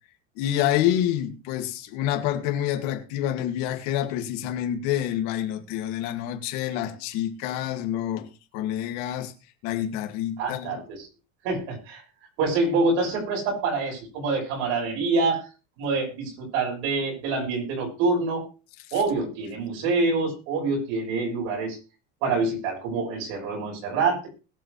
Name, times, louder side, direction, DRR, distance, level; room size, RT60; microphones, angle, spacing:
voice 1, 0.4-9.3 9.6-10.8, left 11 dB, 55° left, 2.3 m, -27 dB
voice 2, 10.4-11.1 11.4-12.0 12.4-15.4 15.8-18.4 18.9-21.8 22.2-24.3, right 3 dB, 60° right, 6.2 m, -26 dB
21.0 x 7.6 x 3.2 m
cardioid pair, 170°, 32 cm